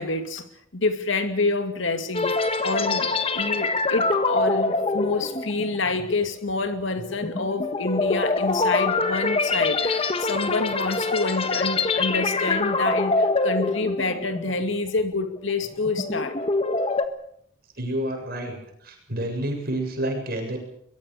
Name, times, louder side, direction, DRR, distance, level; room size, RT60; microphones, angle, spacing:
voice 1, 0.0-2.3 2.6-16.4, left 3 dB, 65° left, 8 dB, 2.5 m, -27 dB
sound 1, 2.1-14.7 15.0-15.2 15.7-17.1, left 3 dB, 30° left, 1.5 m, -25 dB
voice 2, 17.8-18.6 18.8-20.6, right 1 dB, 50° right, 3 dB, 7.7 m, -29 dB
23.5 x 22.0 x 6.7 m, 0.70 s
head